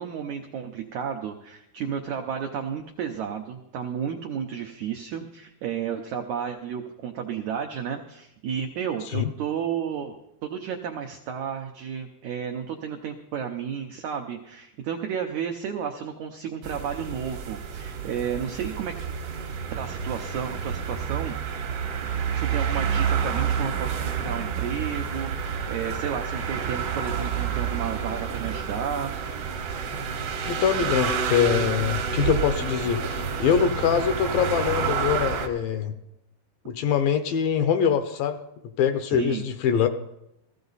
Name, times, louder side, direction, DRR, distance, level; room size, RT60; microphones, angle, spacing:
voice 1, 0.0-10.1 10.4-19.0 19.7-21.4 22.0-29.1 39.1-39.5, right 8 dB, 85° right, 4 dB, 1.6 m, -32 dB
sound 1, 16.6-35.5, right 7 dB, 60° right, 1.6 m, -29 dB
voice 2, 30.5-35.9 36.7-38.4 38.8-39.9, left 8 dB, 75° left, 9 dB, 2.3 m, -24 dB
16.0 x 15.5 x 4.0 m, 0.83 s
omnidirectional pair, 4.5 m